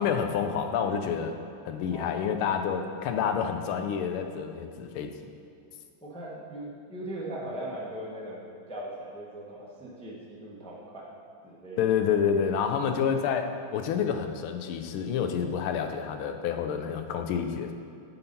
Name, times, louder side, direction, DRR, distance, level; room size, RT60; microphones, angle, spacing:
voice 1, 0.0-1.4 1.6-5.1 11.8-17.7, left 7 dB, 80° left, 7 dB, 1.5 m, -28 dB
voice 2, 6.0-8.4 8.7-11.1 11.4-11.8, right 1 dB, 5° left, -5 dB, 0.5 m, -39 dB
9.9 x 3.9 x 5.3 m, 2.5 s
omnidirectional pair, 2.3 m